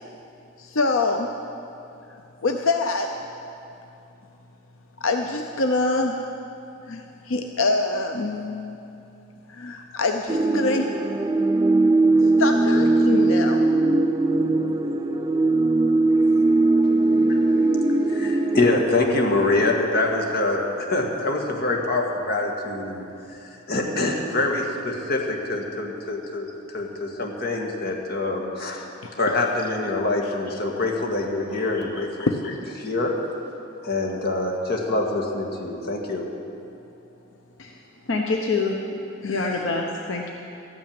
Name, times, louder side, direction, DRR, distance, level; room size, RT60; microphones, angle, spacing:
voice 1, 0.6-1.3 2.4-3.1 5.0-6.3 6.9-8.8 9.5-10.9 12.4-13.6 29.0-29.1 31.5-31.6 32.2-32.3 39.2-39.6, left 3 dB, 90° left, 4 dB, 0.7 m, -25 dB
sound 1, 10.3-18.8, right 2 dB, 20° right, 0.5 m, -20 dB
voice 2, 18.1-23.0 23.3-23.4 23.7-28.8 29.2-33.1 33.8-36.2, left 2 dB, 55° left, 0 dB, 1.9 m, -25 dB
voice 3, 38.1-38.8 39.2-40.3, left 3 dB, 70° left, 0 dB, 1.0 m, -25 dB
13.5 x 9.0 x 8.8 m, 2.7 s
head